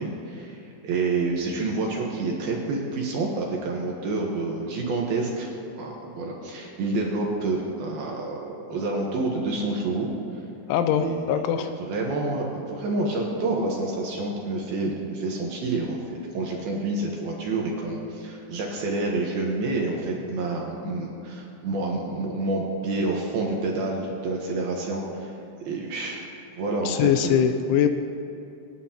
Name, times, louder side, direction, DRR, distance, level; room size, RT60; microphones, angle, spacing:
voice 1, 0.0-10.1 11.0-11.2 11.6-25.3 25.6-26.2 26.5-27.4, right 2 dB, 70° right, -1 dB, 2.4 m, -28 dB
voice 2, 10.7-11.7 26.9-27.9, left 9 dB, 85° left, 8 dB, 2.9 m, -22 dB
27.0 x 9.6 x 2.9 m, 2.8 s
omnidirectional pair, 5.6 m